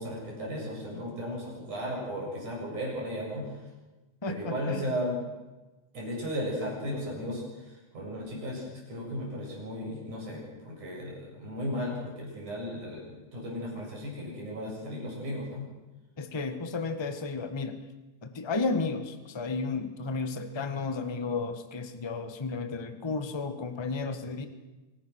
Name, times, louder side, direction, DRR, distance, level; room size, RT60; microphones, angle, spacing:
voice 1, 0.0-3.7 4.2-5.2 5.9-13.0 13.3-15.7, equal, 80° right, -2 dB, 9.2 m, -35 dB
voice 2, 4.2-5.0 16.2-17.9 18.2-24.4, left 4 dB, 25° left, 8 dB, 0.6 m, -33 dB
26.5 x 19.0 x 6.5 m, 1.1 s
omnidirectional pair, 3.4 m